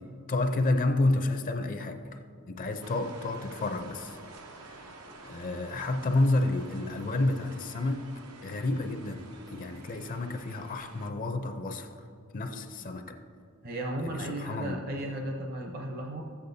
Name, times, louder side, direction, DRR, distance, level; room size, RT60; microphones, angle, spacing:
voice 1, 0.0-2.2 2.5-4.2 4.5-4.9 5.2-8.1 8.4-12.0 12.3-13.2 14.0-14.8, left 2 dB, 40° left, 7 dB, 0.5 m, -30 dB
sound 1, 2.8-11.1, right 3 dB, 90° right, 0.9 m, -49 dB
voice 2, 13.6-16.2, right 1 dB, 45° right, 1 dB, 0.7 m, -35 dB
13.5 x 8.3 x 2.7 m, 2.6 s
head